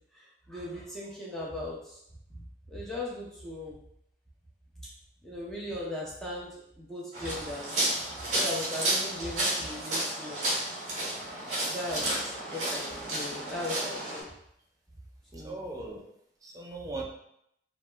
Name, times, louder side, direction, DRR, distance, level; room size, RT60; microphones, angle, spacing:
voice 1, 0.1-2.0 2.3-3.8 5.2-6.5 6.8-7.7 8.3-10.4 11.6-14.3 15.3-15.6, left 1 dB, 5° left, -6 dB, 0.8 m, -38 dB
sound 1, 7.1-14.2, right 1 dB, 45° right, 1.0 m, -31 dB
voice 2, 11.9-12.3 15.3-16.1 16.4-17.0, right 2 dB, 20° right, 0 dB, 0.4 m, -39 dB
2.8 x 2.1 x 3.3 m, 0.74 s
head